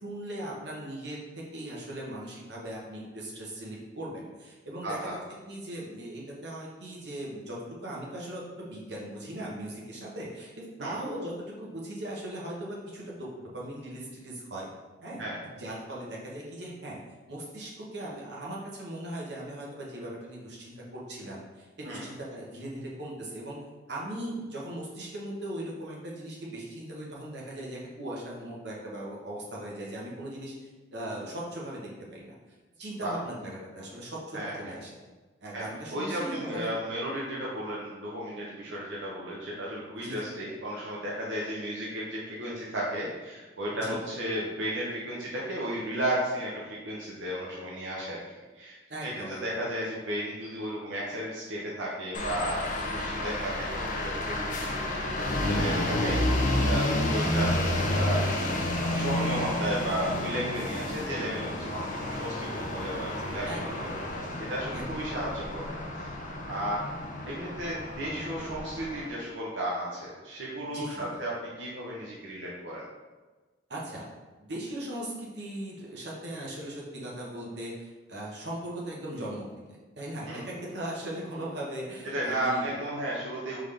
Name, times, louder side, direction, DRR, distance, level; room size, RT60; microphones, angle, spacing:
voice 1, 0.0-1.2 1.5-5.2 5.5-14.7 15.0-15.2 15.5-17.0 17.3-23.6 23.9-32.3 32.8-35.0 35.4-36.8 40.0-40.2 43.7-44.0 48.9-49.6 63.4-64.0 64.7-64.9 70.6-71.2 73.7-74.1 74.4-82.8, right 1 dB, 65° right, -4 dB, 1.1 m, -39 dB
voice 2, 4.8-5.2 10.8-10.9 15.2-15.4 21.8-22.1 33.0-33.1 34.3-34.7 35.5-35.6 35.9-48.2 48.5-48.8 49.0-58.3 58.8-63.5 64.1-66.1 66.5-66.8 67.2-71.3 71.6-72.8 80.3-80.4 82.1-83.6, right 1 dB, 90° right, -5 dB, 0.8 m, -34 dB
sound 1, 52.1-69.1, left 1 dB, 45° left, 0.6 m, -30 dB
3.8 x 3.6 x 3.3 m, 1.3 s
head